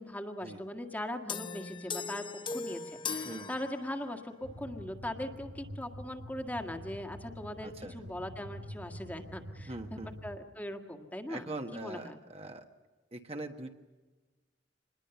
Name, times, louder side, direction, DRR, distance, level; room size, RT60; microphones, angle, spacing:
voice 1, 0.0-2.2 2.5-12.2, left 1 dB, 10° left, 5 dB, 1.7 m, -40 dB
sound 1, 1.3-4.3, left 5 dB, 30° left, 0.8 m, -39 dB
sound 2, 4.4-10.4, equal, 85° right, 1.4 m, -47 dB
voice 2, 7.6-8.0 9.7-10.2 11.3-12.6 13.1-13.7, right 2 dB, 35° right, 4 dB, 1.5 m, -42 dB
26.0 x 21.0 x 7.0 m, 1.2 s
head